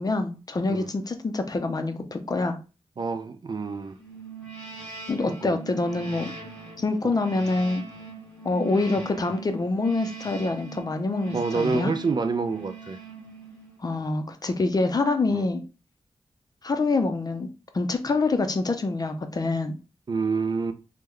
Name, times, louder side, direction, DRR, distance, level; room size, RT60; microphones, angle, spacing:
voice 1, 0.0-2.6 5.1-6.3 6.8-7.8 8.4-11.9 13.8-15.6 16.6-19.8, left 3 dB, 35° left, 0.5 m, -26 dB
voice 2, 3.0-4.0 5.3-5.6 11.3-13.0 15.3-15.4 20.1-20.7, right 4 dB, 40° right, 0.4 m, -27 dB
sound 1, 4.0-13.9, right 4 dB, 10° left, 1.2 m, -41 dB
3.1 x 2.1 x 3.6 m
wide cardioid pair, 85°, 11 cm